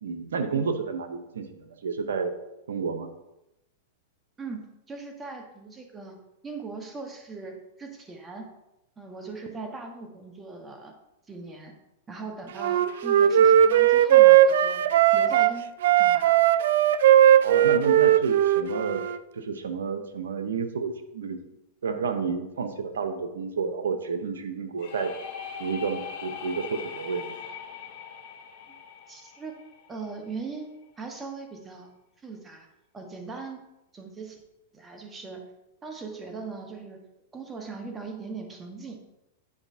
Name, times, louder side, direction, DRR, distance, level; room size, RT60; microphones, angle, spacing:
voice 1, 0.0-2.4 2.7-3.1 17.3-19.0 19.3-21.4 21.8-25.1 25.6-27.3, right 5 dB, 90° right, 7 dB, 0.8 m, -30 dB
voice 2, 4.4-6.1 6.4-8.5 9.0-10.9 11.3-11.7 12.1-14.8 15.1-16.5 29.1-29.6 29.9-30.7 31.0-31.9 32.2-32.7 32.9-33.6 33.9-34.4 34.7-35.4 35.8-37.0 37.3-39.0, right 4 dB, 15° right, 3 dB, 1.2 m, -39 dB
Wind instrument woodwind instrument, 12.6-15.5 15.8-19.2, right 11 dB, 75° right, 0.3 m, -18 dB
sound 1, 24.8-30.4, left 7 dB, 55° left, 1.1 m, -41 dB
9.6 x 4.9 x 2.7 m, 0.91 s
hypercardioid pair, 125°, 0 cm